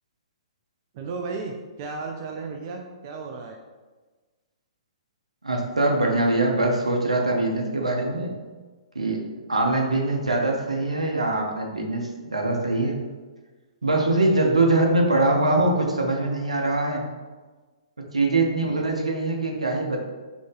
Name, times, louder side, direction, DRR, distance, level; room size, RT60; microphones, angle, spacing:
voice 1, 0.9-3.6, right 4 dB, 35° right, 2 dB, 0.3 m, -34 dB
voice 2, 5.4-8.3 8.9-9.2 9.5-13.0 13.8-17.0 18.1-20.0, right 2 dB, 75° right, 1 dB, 0.7 m, -23 dB
4.1 x 2.9 x 3.2 m, 1.3 s
figure-of-eight pair, 120°, 3 cm